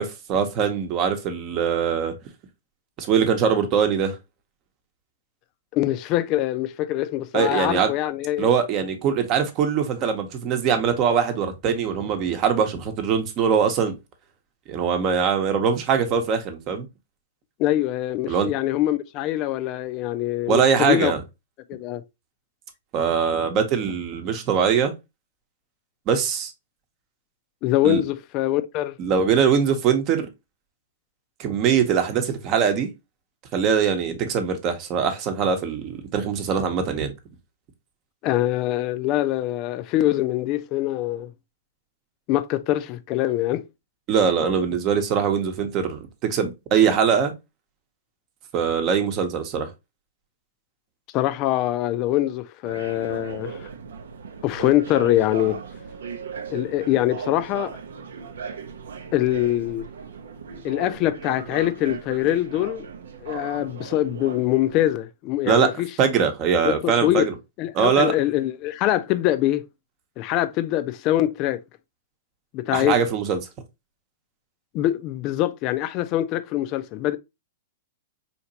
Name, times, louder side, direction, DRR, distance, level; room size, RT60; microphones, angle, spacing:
voice 1, 0.0-2.1 3.0-4.2 7.3-7.9 8.4-13.9 14.7-16.8 18.3-18.5 20.5-21.2 22.9-24.9 26.1-26.5 27.8-28.0 29.0-30.3 31.4-32.9 33.5-37.1 44.1-47.3 48.5-49.7 65.5-65.7 66.0-67.3 67.7-68.1 72.7-73.4, right 7 dB, 35° right, 0.9 m, -22 dB
voice 2, 5.7-8.5 17.6-21.1 21.7-22.0 27.6-28.9 38.2-41.3 42.3-43.6 51.1-53.7 54.4-55.6 56.5-57.7 59.1-59.9 60.6-62.8 63.2-65.9 66.6-67.3 67.6-69.6 70.2-71.6 72.5-73.0 74.7-77.2, left 14 dB, 40° left, 0.4 m, -23 dB
sound 1, 52.6-64.9, right 6 dB, 70° right, 0.6 m, -37 dB
4.3 x 2.8 x 2.7 m
figure-of-eight pair, 110°, 0 cm